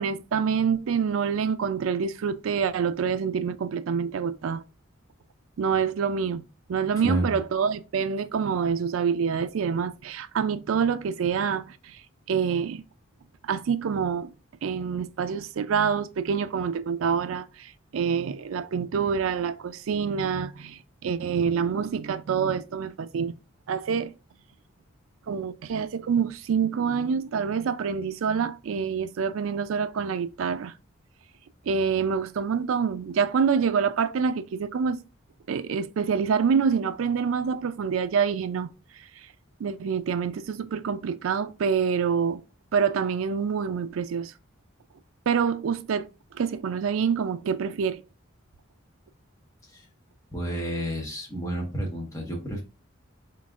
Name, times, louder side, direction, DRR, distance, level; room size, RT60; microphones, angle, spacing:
voice 1, 0.0-4.6 5.6-6.4 6.7-12.0 12.3-12.8 13.4-14.3 14.6-23.3 23.7-24.1 25.3-30.7 31.7-35.0 35.5-38.7 39.6-42.4 42.7-44.3 45.3-46.1 46.3-48.0, right 6 dB, 80° right, 0.4 m, -26 dB
voice 2, 7.0-7.3 49.7-49.8 50.3-52.6, right 1 dB, 15° left, 1.2 m, -30 dB
4.1 x 3.8 x 2.4 m
head